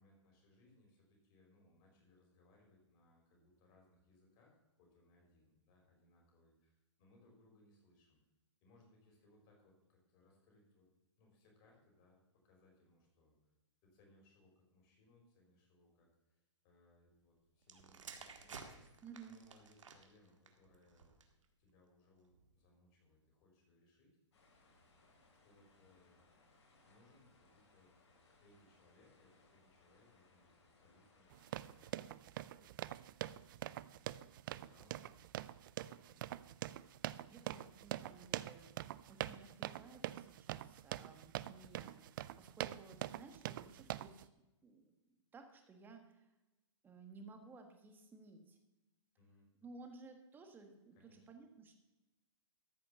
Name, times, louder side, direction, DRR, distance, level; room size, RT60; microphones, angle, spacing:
voice 1, 0.0-8.2 8.6-10.9 11.2-13.4 13.8-18.7 19.2-21.2 21.6-24.1 25.4-26.2 26.8-27.9 28.4-35.2 35.8-36.4 49.2-49.5 50.9-51.3, left 2 dB, 35° left, -1 dB, 4.6 m, -69 dB
sound 1, 17.6-21.5 22.2-22.5, right 5 dB, 90° right, 1.7 m, -55 dB
voice 2, 19.0-19.4 37.3-44.3 44.6-46.3 46.8-48.6 49.6-51.7, right 4 dB, 10° right, 5 dB, 1.4 m, -57 dB
sound 2, 24.3-32.1, left 3 dB, 65° left, 4.3 m, -69 dB
sound 3, 31.3-44.3, right 13 dB, 45° right, 0.4 m, -44 dB
13.5 x 5.7 x 6.9 m, 1.0 s
hypercardioid pair, 145°, 16 cm